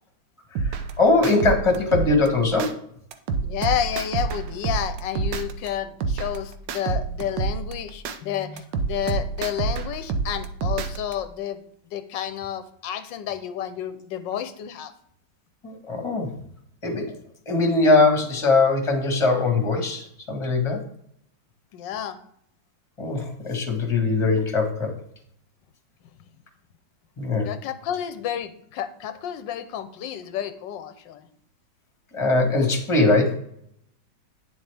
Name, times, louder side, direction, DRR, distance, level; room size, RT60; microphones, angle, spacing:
sound 1, 0.6-2.7 3.1-5.7 6.0-8.2 8.6-11.1, right 5 dB, 75° right, 1.4 m, -28 dB
voice 1, 1.0-2.8 15.6-16.3 16.8-17.2 17.4-20.8 23.0-24.9 27.2-27.5 32.1-33.4, left 3 dB, 15° left, 4 dB, 1.4 m, -21 dB
voice 2, 3.4-11.6 11.9-14.9 21.7-22.2 27.4-31.3, left 10 dB, 90° left, 11 dB, 1.4 m, -30 dB
9.6 x 7.2 x 3.4 m, 0.68 s
omnidirectional pair, 2.0 m